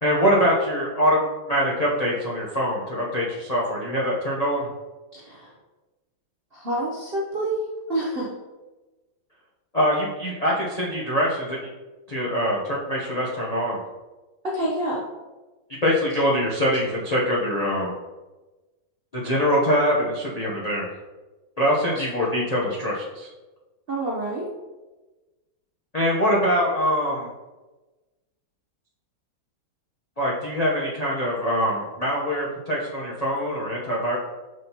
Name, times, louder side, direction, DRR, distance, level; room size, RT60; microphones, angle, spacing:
voice 1, 0.0-4.7 9.7-11.7 12.1-13.8 15.8-17.9 19.1-20.9 21.6-23.3 25.9-27.3 30.2-34.2, equal, 55° left, -5 dB, 0.4 m, -23 dB
voice 2, 5.1-5.5 6.5-8.3 14.4-15.1 21.9-22.0 23.9-24.5, right 1 dB, 60° right, -4 dB, 0.6 m, -28 dB
6.1 x 5.6 x 2.9 m, 1.2 s
omnidirectional pair, 2.3 m